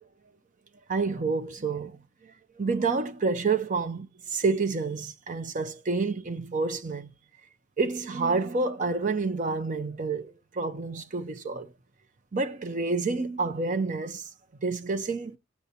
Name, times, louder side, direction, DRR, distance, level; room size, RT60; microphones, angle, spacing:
voice 1, 0.9-7.1 7.8-11.7 12.3-14.3 14.6-15.4, right 4 dB, 40° right, 0.7 m, -29 dB
15.5 x 8.1 x 2.8 m
head